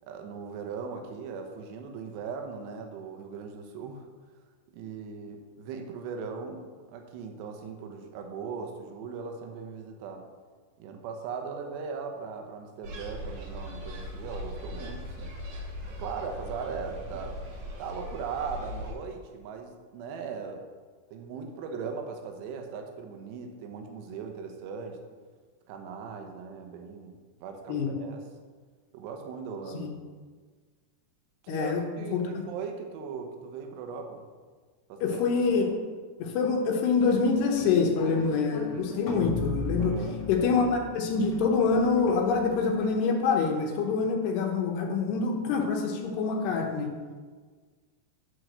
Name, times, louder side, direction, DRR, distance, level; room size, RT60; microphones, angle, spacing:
voice 1, 0.1-4.1 4.7-6.6 6.9-10.3 10.8-15.3 16.0-17.4 17.8-20.6 21.1-25.0 25.7-28.2 28.9-29.9 31.4-34.2 34.9-35.2 39.8-40.2, right 5 dB, 80° right, 4 dB, 3.1 m, -39 dB
sound 1, 12.8-18.9, equal, 60° right, 2.3 m, -39 dB
voice 2, 31.5-31.8 32.1-32.5 35.0-35.7 36.2-40.0 40.3-46.9, left 4 dB, 75° left, 1 dB, 3.1 m, -26 dB
sound 2, 37.0-43.2, left 4 dB, 40° left, 2.2 m, -38 dB
11.0 x 4.7 x 6.6 m, 1.5 s
omnidirectional pair, 4.9 m